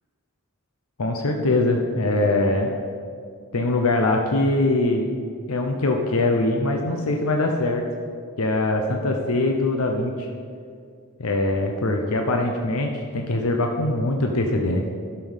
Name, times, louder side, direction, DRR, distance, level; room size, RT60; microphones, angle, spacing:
voice 1, 1.0-2.8 3.5-5.1 5.5-7.8 8.4-10.3 11.2-14.8, left 2 dB, 75° left, 3 dB, 0.8 m, -22 dB
10.5 x 7.0 x 5.5 m, 2.3 s
head